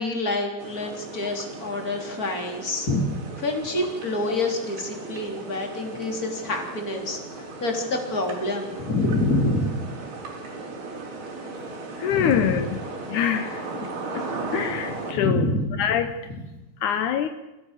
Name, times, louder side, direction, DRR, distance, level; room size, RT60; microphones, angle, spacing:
voice 1, 0.0-3.0 3.4-7.2 7.6-9.8 12.1-12.6 15.1-15.9, left 2 dB, 20° left, 2 dB, 3.5 m, -27 dB
sound 1, 0.6-15.1, right 3 dB, 70° right, 5.9 m, -36 dB
voice 2, 12.0-12.8 13.1-14.3 14.5-15.5 15.8-16.1 16.8-17.3, left 9 dB, 80° left, 8 dB, 1.8 m, -25 dB
27.5 x 16.0 x 6.7 m, 1.1 s
omnidirectional pair, 4.8 m